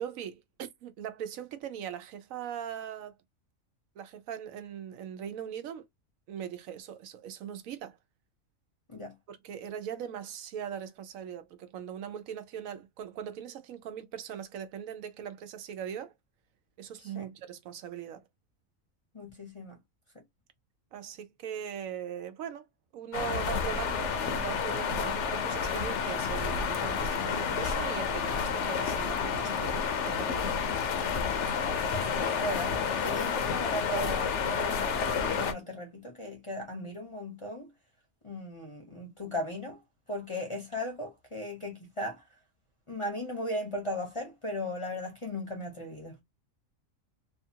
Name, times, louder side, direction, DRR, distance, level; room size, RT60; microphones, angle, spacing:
voice 1, 0.0-3.2 4.0-5.9 6.3-8.0 9.3-16.1 16.8-18.2 20.9-22.7 22.9-30.6, right 9 dB, 80° right, 1.0 m, -40 dB
voice 2, 19.1-19.7 31.9-37.7 38.2-39.8 40.1-42.2 42.9-46.2, left 1 dB, 30° left, 0.7 m, -37 dB
sound 1, 23.1-35.5, left 6 dB, 65° left, 0.9 m, -30 dB
2.7 x 2.5 x 2.7 m
omnidirectional pair, 1.4 m